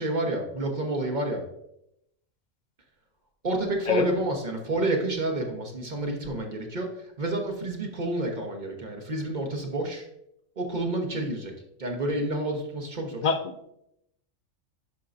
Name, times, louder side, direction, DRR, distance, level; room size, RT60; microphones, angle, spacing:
voice 1, 0.0-1.4 3.4-10.1 10.6-11.5 11.8-13.3, right 1 dB, 40° right, 2 dB, 1.2 m, -29 dB
voice 2, 13.2-13.7, left 5 dB, 60° left, 7 dB, 0.4 m, -26 dB
11.5 x 4.6 x 2.6 m, 0.79 s
omnidirectional pair, 1.3 m